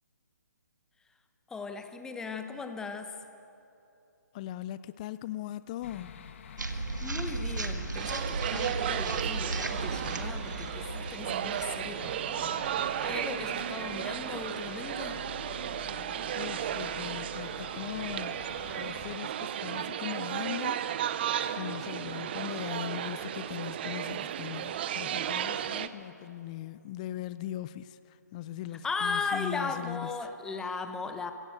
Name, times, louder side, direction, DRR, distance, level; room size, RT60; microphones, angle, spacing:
voice 1, 1.5-3.2 7.0-15.2 28.8-31.3, left 4 dB, 5° left, 7 dB, 0.9 m, -37 dB
voice 2, 4.3-6.1 16.3-18.4 18.7-21.2 21.5-30.1, left 12 dB, 25° left, 15 dB, 0.4 m, -39 dB
sound 1, 5.8-19.2, left 7 dB, 45° left, 1.4 m, -47 dB
sound 2, 6.6-12.8, right 2 dB, 85° right, 1.9 m, -36 dB
sound 3, 7.9-25.9, right 10 dB, 35° right, 0.7 m, -34 dB
22.5 x 16.5 x 8.0 m, 2.8 s
figure-of-eight pair, 145°, 10 cm